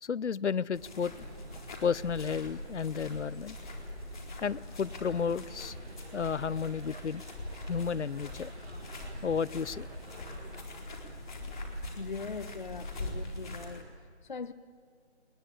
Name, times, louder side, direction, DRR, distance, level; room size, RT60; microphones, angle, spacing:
voice 1, 0.0-1.1 1.8-3.6 4.4-5.8 6.1-7.2 7.7-8.5 9.2-9.9, left 6 dB, 80° left, 20 dB, 0.7 m, -32 dB
sound 1, 0.7-13.8, left 1 dB, 5° left, 0.9 m, -42 dB
sound 2, 1.1-10.6, right 2 dB, 70° right, 2.6 m, -51 dB
voice 2, 12.0-14.5, left 4 dB, 45° left, 9 dB, 0.7 m, -41 dB
22.0 x 20.5 x 8.6 m, 2.1 s
figure-of-eight pair, 170°, 34 cm